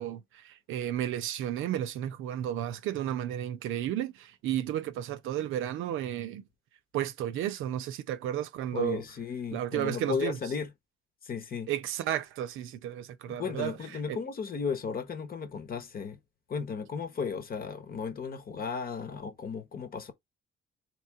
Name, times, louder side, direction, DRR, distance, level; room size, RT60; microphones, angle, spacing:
voice 1, 0.0-6.4 6.9-9.0 9.5-10.4 11.7-13.8 14.1-14.2, right 11 dB, 85° right, 0.6 m, -33 dB
voice 2, 8.7-10.7 11.2-11.7 13.3-16.2 16.5-20.1, left 6 dB, 50° left, 1.0 m, -35 dB
3.2 x 3.0 x 4.6 m
cardioid pair, 90°, 20 cm